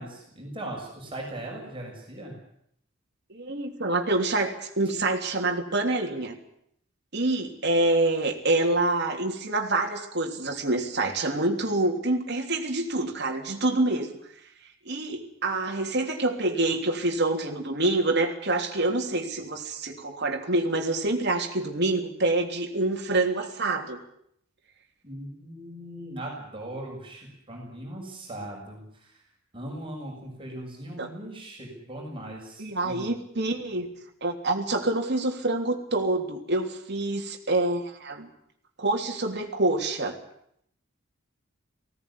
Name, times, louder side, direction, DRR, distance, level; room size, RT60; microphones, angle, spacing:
voice 1, 0.0-2.3 25.0-29.2 29.5-33.1, right 1 dB, 25° right, -1 dB, 6.7 m, -39 dB
voice 2, 3.3-6.4 7.1-14.1 14.8-24.0 31.0-31.1 32.6-33.9 34.2-38.3 38.8-40.2, right 2 dB, 55° right, 2 dB, 3.3 m, -26 dB
20.0 x 17.5 x 10.0 m, 0.72 s
head